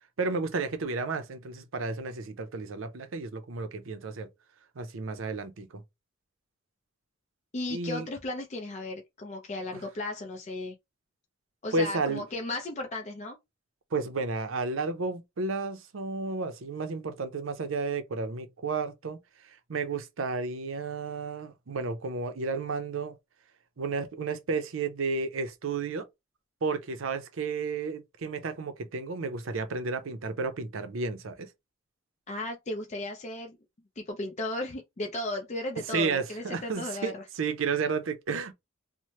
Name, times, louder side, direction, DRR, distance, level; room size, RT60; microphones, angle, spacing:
voice 1, 0.2-4.3 4.8-5.8 7.7-8.1 9.7-9.8 11.7-12.2 13.9-19.2 19.7-23.1 23.8-26.1 26.6-31.5 35.9-38.5, right 4 dB, 80° right, 0.6 m, -32 dB
voice 2, 7.5-10.7 11.6-13.4 32.3-33.6 34.0-37.2, left 2 dB, 35° left, 0.5 m, -35 dB
3.1 x 2.1 x 2.8 m
head